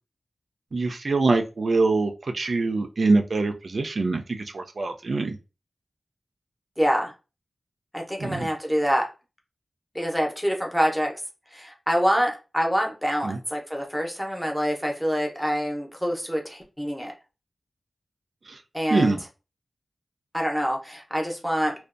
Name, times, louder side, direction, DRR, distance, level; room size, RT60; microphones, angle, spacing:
voice 1, 0.7-4.2 4.5-5.3 8.2-8.5 13.2-13.4 18.9-19.2, right 3 dB, 60° right, 6 dB, 0.3 m, -24 dB
voice 2, 6.8-7.1 7.9-9.1 9.9-11.1 11.5-17.1 18.7-19.2 20.3-21.7, equal, 5° left, 1 dB, 0.6 m, -26 dB
2.5 x 2.2 x 2.4 m, 0.30 s
wide cardioid pair, 110°, 0 cm